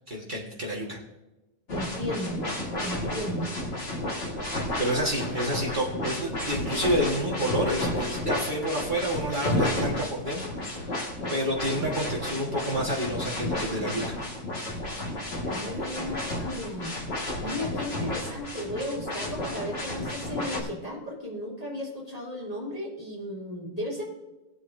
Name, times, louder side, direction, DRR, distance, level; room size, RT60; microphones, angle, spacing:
voice 1, 0.1-1.0 4.8-10.5 10.8-11.0 11.3-14.2, equal, 75° right, -3 dB, 0.4 m, -29 dB
sound 1, 1.7-20.6, left 1 dB, 30° left, 1.2 m, -32 dB
voice 2, 1.7-2.4 2.8-3.5 15.5-16.9 17.4-24.0, left 1 dB, 10° left, -5 dB, 3.2 m, -35 dB
18.5 x 8.5 x 2.7 m, 1.1 s
omnidirectional pair, 3.8 m